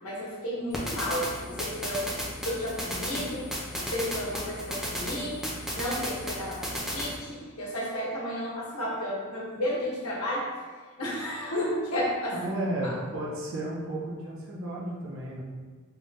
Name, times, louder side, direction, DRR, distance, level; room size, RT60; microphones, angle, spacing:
voice 1, 0.0-10.5 11.0-12.4 12.8-12.9, equal, 85° left, -4 dB, 1.1 m, -32 dB
sound 1, 0.7-7.2, equal, ahead, 0.6 m, -34 dB
voice 2, 12.3-15.4, right 1 dB, 65° right, -5 dB, 1.0 m, -33 dB
3.4 x 2.7 x 3.5 m, 1.4 s
head